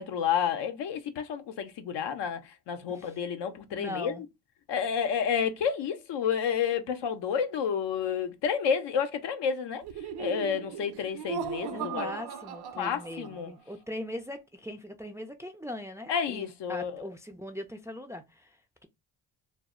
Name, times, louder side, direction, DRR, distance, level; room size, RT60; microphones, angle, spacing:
voice 1, 0.0-4.1 4.7-9.8 10.2-12.1 12.8-13.5 16.1-17.0, left 7 dB, 75° left, 0.6 m, -30 dB
voice 2, 3.7-4.2 11.7-18.9, left 1 dB, 5° right, 0.3 m, -40 dB
Laughter, 9.8-13.5, right 7 dB, 65° right, 0.5 m, -38 dB
2.0 x 2.0 x 3.5 m
cardioid pair, 65°, 43 cm